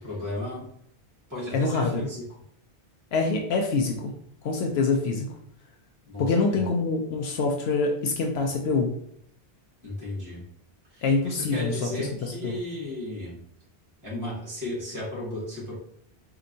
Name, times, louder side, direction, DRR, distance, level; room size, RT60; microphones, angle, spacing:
voice 1, 0.0-0.7 1.3-2.2 6.0-6.6 9.8-10.4 10.9-13.4 14.0-15.7, left 1 dB, 20° right, -7 dB, 1.4 m, -34 dB
voice 2, 1.5-2.1 3.1-4.1 4.4-5.3 6.2-8.9 11.0-12.6, left 3 dB, 75° left, 1 dB, 0.8 m, -25 dB
4.3 x 2.8 x 2.6 m, 0.67 s
omnidirectional pair, 1.1 m